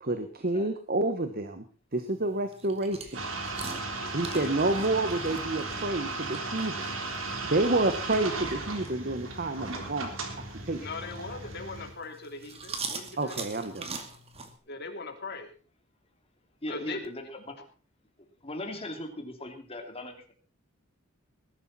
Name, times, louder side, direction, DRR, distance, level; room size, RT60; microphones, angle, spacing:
voice 1, 0.0-1.6 1.9-3.3 4.1-6.9 7.4-10.2 10.7-10.9 13.2-14.0, right 2 dB, 45° right, 8 dB, 1.4 m, -29 dB
sound 1, 1.9-14.5, right 4 dB, 30° right, 2.3 m, -44 dB
sound 2, 3.1-11.9, right 3 dB, 70° right, 3.5 m, -36 dB
voice 2, 4.0-4.5 10.8-13.5 14.7-15.5 16.7-17.0, left 3 dB, 55° left, 4 dB, 3.1 m, -40 dB
voice 3, 16.6-17.5 18.4-20.3, left 1 dB, 30° left, 4 dB, 2.9 m, -38 dB
20.0 x 12.0 x 4.3 m, 0.35 s
head